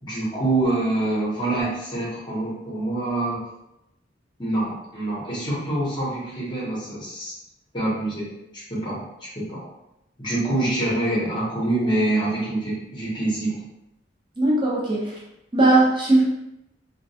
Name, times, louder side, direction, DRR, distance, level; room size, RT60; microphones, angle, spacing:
voice 1, 0.0-3.4 4.4-7.4 7.7-9.6 10.2-13.6, right 2 dB, 25° left, -6 dB, 0.8 m, -26 dB
voice 2, 14.4-15.1 15.5-16.2, right 2 dB, 25° right, -6 dB, 0.6 m, -18 dB
2.2 x 2.2 x 2.6 m, 0.87 s
head